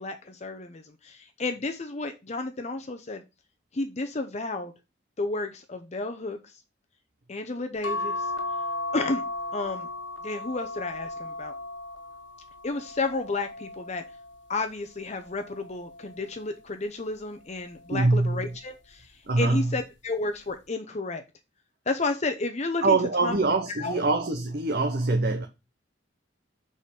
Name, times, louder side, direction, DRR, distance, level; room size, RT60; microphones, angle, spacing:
voice 1, 0.0-3.2 3.7-4.7 5.2-6.6 7.3-8.3 8.9-9.2 9.5-9.9 10.2-11.5 12.6-14.0 14.5-19.1 19.4-21.2 21.9-23.4 23.8-24.0, left 3 dB, 35° left, 0.7 m, -32 dB
sound 1, 7.8-14.5 15.1-16.5 17.7-18.2 18.5-18.6, left 2 dB, 80° left, 1.5 m, -36 dB
voice 2, 17.9-18.5 19.3-19.7 22.8-25.5, right 3 dB, 55° right, 1.0 m, -24 dB
6.7 x 5.0 x 5.2 m
head